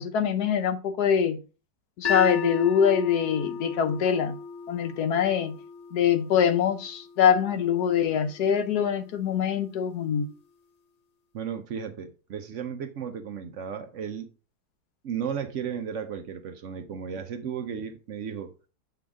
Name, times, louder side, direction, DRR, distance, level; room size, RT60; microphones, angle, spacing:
voice 1, 0.0-1.4 2.0-4.4 4.7-5.6 5.9-10.3, left 8 dB, 75° left, 1.3 m, -24 dB
sound 1, 2.0-8.2, left 5 dB, 50° left, 0.5 m, -35 dB
voice 2, 11.3-14.3 15.0-18.5, right 7 dB, 60° right, 0.9 m, -34 dB
7.7 x 3.8 x 3.6 m
omnidirectional pair, 1.8 m